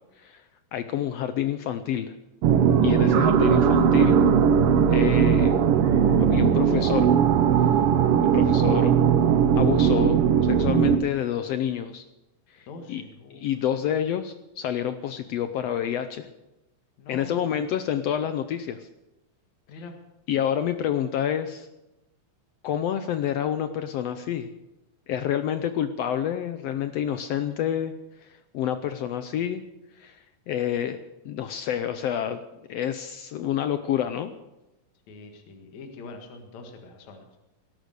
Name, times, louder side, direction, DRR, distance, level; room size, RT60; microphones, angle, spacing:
voice 1, 0.7-2.1 2.8-4.2 4.9-5.6 6.2-7.1 8.2-9.0 9.5-12.0 12.5-13.0 13.3-16.3 17.1-18.9 19.7-19.8 20.3-21.7 22.6-24.5 25.1-27.9 28.2-28.3 28.5-29.6 30.0-30.2 30.5-31.0 31.2-32.4 32.7-34.3, left 10 dB, 80° left, 10 dB, 1.4 m, -28 dB
sound 1, 2.4-11.0, right 8 dB, 75° right, 1.3 m, -19 dB
voice 2, 12.7-13.5 17.0-17.4 19.7-19.9 35.1-37.4, left 3 dB, 60° left, 4 dB, 3.0 m, -43 dB
18.5 x 11.5 x 6.6 m, 0.97 s
omnidirectional pair, 3.7 m